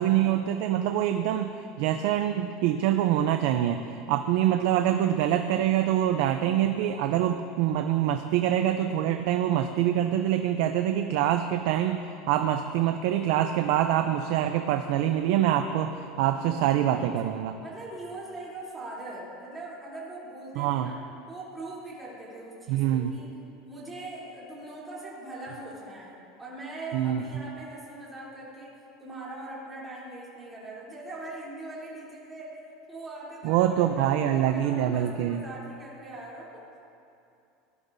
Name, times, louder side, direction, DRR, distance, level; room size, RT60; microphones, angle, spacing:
voice 1, 0.0-1.5 1.8-12.0 12.3-17.6 20.6-20.9 22.7-23.1 26.9-27.2 33.4-35.4, right 11 dB, 65° right, 7 dB, 0.5 m, -25 dB
voice 2, 17.6-21.0 21.3-23.3 23.7-32.6 32.9-36.8, right 2 dB, 10° right, -8 dB, 3.2 m, -41 dB
18.0 x 11.5 x 2.7 m, 2.7 s
supercardioid pair, 155°, 0 cm